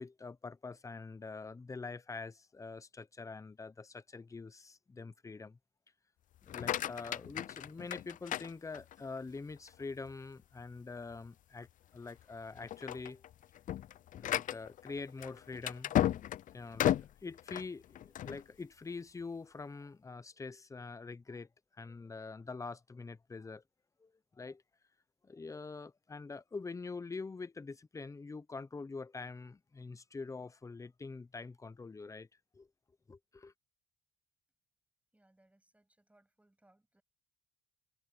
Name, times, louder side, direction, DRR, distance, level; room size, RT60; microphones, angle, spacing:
voice 1, 0.0-5.6 6.4-13.2 14.2-15.9 16.5-23.6 24.0-24.6 25.2-32.3 32.5-32.7 33.1-33.5, left 4 dB, 20° left, 0.9 m, -45 dB
sound 1, 6.4-9.2 9.7-10.1 10.6-10.7 11.1-11.3 11.9-12.2 12.6-18.4, left 12 dB, 50° left, 0.6 m, -35 dB
voice 2, 35.1-37.0, right 1 dB, 10° right, 7.3 m, -69 dB
cardioid pair, 110°, 17 cm